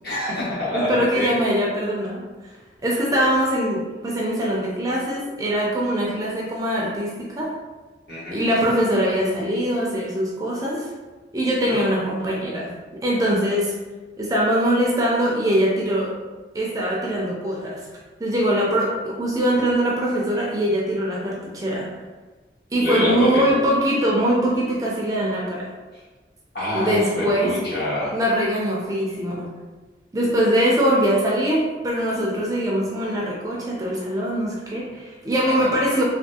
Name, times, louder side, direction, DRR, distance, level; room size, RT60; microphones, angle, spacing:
voice 1, 0.0-1.3 8.1-8.4 11.7-11.8 22.8-23.5 26.5-28.1 35.4-35.7, left 1 dB, 55° left, -9 dB, 1.4 m, -25 dB
voice 2, 0.7-2.5 2.8-7.5 8.3-10.9 11.3-12.8 13.0-13.7 14.2-16.1 16.5-17.8 18.2-21.9 22.7-25.7 26.7-27.5 28.1-29.5 30.1-36.0, equal, 20° right, -4 dB, 0.4 m, -22 dB
3.4 x 2.4 x 2.7 m, 1.3 s
head